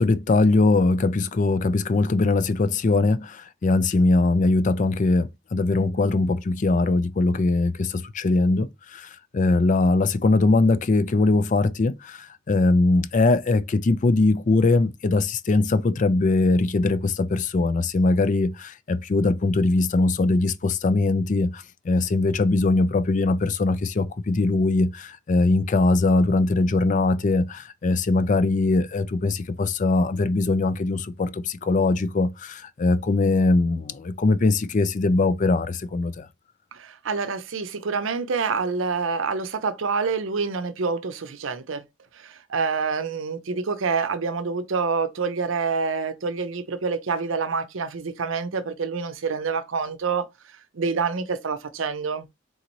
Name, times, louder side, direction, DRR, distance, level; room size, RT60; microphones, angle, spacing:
voice 1, 0.0-36.3, left 3 dB, 40° left, 0.4 m, -21 dB
voice 2, 36.7-41.8 42.1-50.3 50.7-52.3, right 5 dB, 80° right, 0.6 m, -27 dB
4.0 x 3.8 x 3.0 m
head